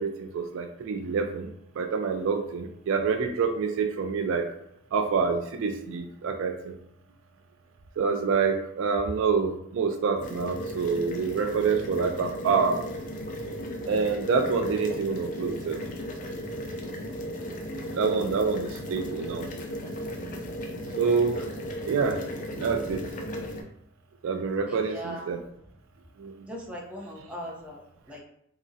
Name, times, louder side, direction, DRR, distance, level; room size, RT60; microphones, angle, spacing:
voice 1, 0.0-1.5 1.8-4.5 4.9-6.8 8.0-12.8 13.9-15.8 17.9-19.5 21.0-21.4 21.8-22.2 22.6-23.0 24.2-25.4 26.2-26.3, right 5 dB, 70° right, 5 dB, 0.3 m, -27 dB
sound 1, 10.2-23.6, equal, 40° left, 0.4 m, -36 dB
voice 2, 24.7-25.3 26.5-27.8 28.1-28.2, equal, 5° right, -3 dB, 0.6 m, -39 dB
3.6 x 2.0 x 2.6 m, 0.74 s
head